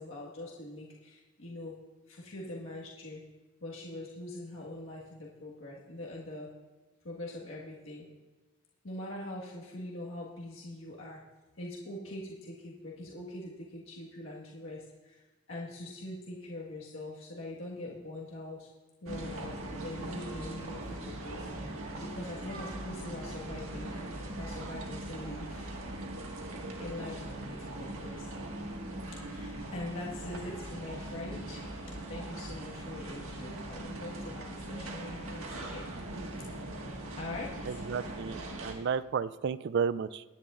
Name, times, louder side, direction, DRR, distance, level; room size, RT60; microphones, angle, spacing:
voice 1, 0.0-1.7 2.1-3.2 3.6-6.5 7.0-8.1 8.8-11.2 11.6-15.2 15.5-18.7 19.0-23.9 24.4-25.7 26.8-28.3 29.1-35.9 37.2-37.8, left 1 dB, 60° left, -4 dB, 1.6 m, -43 dB
sound 1, 19.1-38.7, right 1 dB, 70° right, 1.7 m, -40 dB
voice 2, 37.7-40.2, right 6 dB, 50° right, 17 dB, 0.3 m, -32 dB
21.5 x 9.9 x 2.5 m, 1.2 s
head